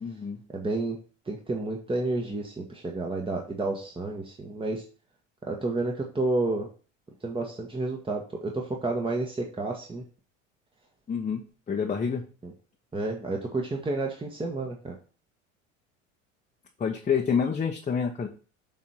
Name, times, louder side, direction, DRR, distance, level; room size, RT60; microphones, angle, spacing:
voice 1, 0.0-0.4 11.1-12.2 16.8-18.3, left 6 dB, 20° left, 1 dB, 1.1 m, -28 dB
voice 2, 0.5-1.0 1.3-4.8 5.5-6.7 7.2-10.0 12.4-12.5 12.9-15.0, right 2 dB, 15° right, 1 dB, 1.5 m, -30 dB
7.4 x 4.3 x 5.7 m, 0.37 s
figure-of-eight pair, 70°, 38 cm